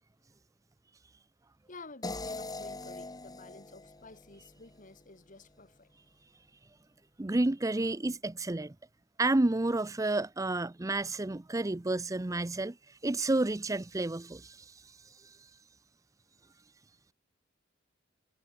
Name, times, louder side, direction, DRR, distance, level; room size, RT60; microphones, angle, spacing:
voice 1, 1.7-5.9, left 3 dB, 40° left, 2.4 m, -51 dB
sound 1, 2.0-5.1, left 2 dB, 20° left, 1.5 m, -42 dB
voice 2, 7.2-8.7 9.2-15.5, right 2 dB, 15° right, 0.5 m, -31 dB
head